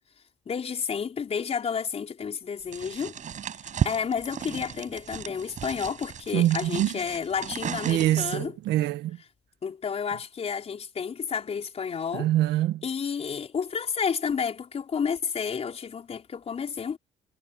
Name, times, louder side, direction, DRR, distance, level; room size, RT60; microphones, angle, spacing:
voice 1, 0.5-3.1 3.8-8.5 9.6-12.3 12.8-17.0, left 6 dB, 40° left, 4.7 m, -31 dB
sound 1, 2.7-8.4, right 8 dB, 45° right, 6.3 m, -35 dB
voice 2, 6.3-6.9 7.8-9.2 12.1-12.8, right 14 dB, 80° right, 1.7 m, -24 dB
cardioid pair, 110°, 17 cm